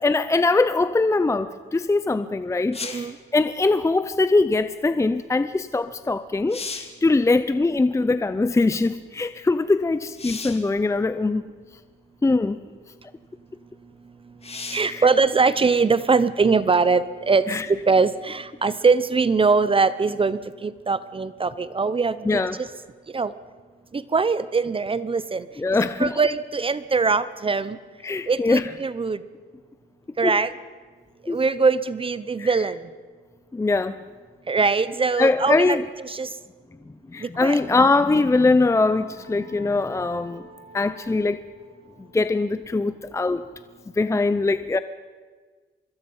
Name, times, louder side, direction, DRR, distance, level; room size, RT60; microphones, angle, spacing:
voice 1, 0.0-3.1 3.3-11.5 12.2-12.6 14.9-15.0 17.5-17.7 22.3-22.6 25.6-26.2 28.0-28.7 30.2-30.3 31.3-31.4 32.4-32.5 33.5-34.0 35.2-35.8 37.1-40.4 40.7-41.4 42.1-43.4 44.0-44.8, left 3 dB, 15° left, 0.6 m, -22 dB
sound 1, 2.7-3.2 5.8-5.9 6.3-7.0 10.2-10.7 11.7-11.8 14.4-15.0 18.6-18.7, left 4 dB, 30° left, 2.2 m, -35 dB
voice 2, 2.8-3.1 14.7-17.5 17.9-22.7 23.1-23.3 23.9-25.5 26.0-27.8 28.3-29.2 30.2-30.5 31.3-32.8 34.5-35.8 36.0-36.3 37.2-37.6, right 4 dB, 25° right, 0.8 m, -22 dB
sound 2, 38.1-43.5, right 1 dB, 65° right, 5.5 m, -50 dB
25.0 x 21.5 x 5.6 m
cardioid pair, 90°, 20 cm